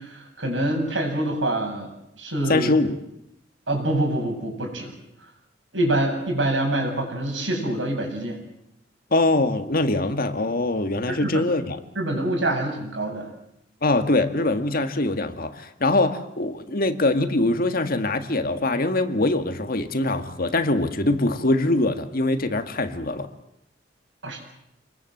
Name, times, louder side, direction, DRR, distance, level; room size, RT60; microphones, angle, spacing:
voice 1, 0.0-1.9 2.2-2.7 3.7-4.9 5.7-8.4 11.1-11.4 12.0-13.3 24.2-24.5, right 1 dB, 85° right, 2 dB, 7.7 m, -25 dB
voice 2, 2.5-3.0 9.1-11.8 13.8-23.3, left 2 dB, 50° left, 8 dB, 1.9 m, -23 dB
27.0 x 21.0 x 7.9 m, 0.80 s
head